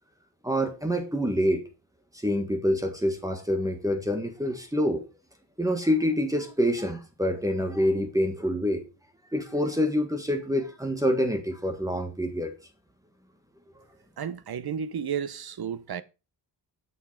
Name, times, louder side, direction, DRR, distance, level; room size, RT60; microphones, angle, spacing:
voice 1, 0.4-1.6 2.2-5.0 5.6-8.8 9.3-12.5 13.7-13.8, equal, 10° right, 1.6 m, -26 dB
voice 2, 14.2-16.0, right 7 dB, 60° right, 0.9 m, -32 dB
11.0 x 6.5 x 5.0 m
wide cardioid pair, 170°, 42 cm